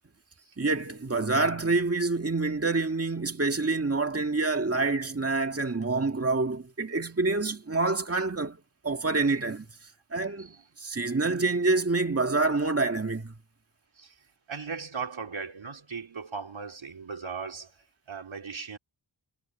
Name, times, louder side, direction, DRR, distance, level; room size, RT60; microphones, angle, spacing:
voice 1, 0.6-8.6 8.8-9.7 10.1-10.5 10.8-13.3, right 3 dB, 30° right, 2.0 m, -27 dB
voice 2, 10.3-10.6 14.0-14.1 14.5-17.7 18.1-18.8, right 5 dB, 85° right, 3.8 m, -38 dB
wide cardioid pair, 75°, 46 cm